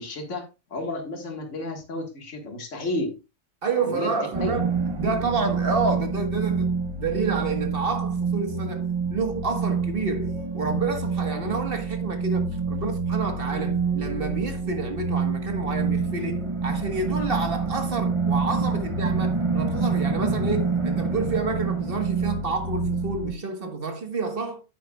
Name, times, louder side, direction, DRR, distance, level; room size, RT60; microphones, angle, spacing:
voice 1, 0.0-3.2 3.8-4.1 4.4-4.5 5.0-5.1, left 2 dB, 70° left, 2.0 m, -32 dB
voice 2, 3.6-4.7 5.0-24.6, right 4 dB, 45° right, 1.6 m, -29 dB
sound 1, 4.3-23.3, right 4 dB, 25° right, 1.0 m, -27 dB
9.5 x 9.2 x 2.3 m
omnidirectional pair, 1.3 m